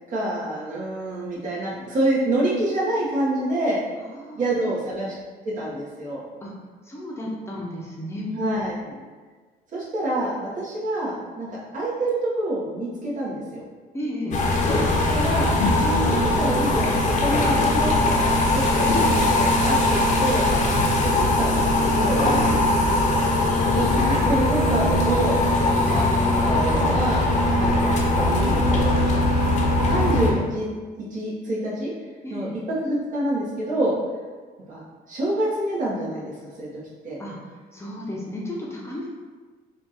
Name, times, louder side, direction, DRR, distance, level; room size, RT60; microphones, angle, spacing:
voice 1, 0.1-3.8 4.3-5.1 5.4-6.2 8.3-8.7 9.7-13.6 15.0-15.5 15.8-20.5 20.9-22.2 23.7-25.4 25.8-27.3 27.5-29.0 29.5-30.7 30.9-31.9 32.3-33.9 34.7-34.8 35.1-36.7 37.0-37.2, right 1 dB, 50° right, -6 dB, 1.4 m, -27 dB
voice 2, 4.0-4.4 6.4-6.5 6.8-8.4 8.9-9.0 13.9-14.4 22.3-22.6 32.2-32.5 37.2-37.4 37.7-39.1, left 1 dB, 15° left, -4 dB, 0.8 m, -33 dB
sound 1, 14.3-30.3, left 2 dB, 45° left, 0.8 m, -20 dB
3.5 x 2.5 x 4.3 m, 1.4 s
cardioid pair, 110°, 17 cm